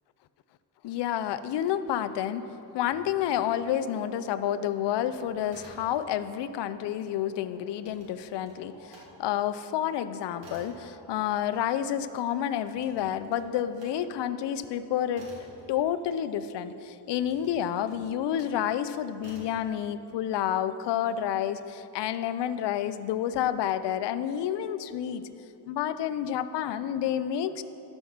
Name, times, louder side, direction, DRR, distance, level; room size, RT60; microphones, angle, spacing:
voice 1, 0.8-2.5 2.7-15.3 15.7-25.2 25.7-27.6, left 10 dB, 70° left, 13 dB, 0.5 m, -29 dB
sound 1, 2.9-15.7, equal, 50° right, 2.3 m, -55 dB
sound 2, 5.3-6.3 6.6-9.1 9.5-16.5 17.1-18.6 19.2-19.7, right 2 dB, 80° right, 2.4 m, -53 dB
12.0 x 5.4 x 5.9 m, 3.0 s
cardioid pair, 140°, 43 cm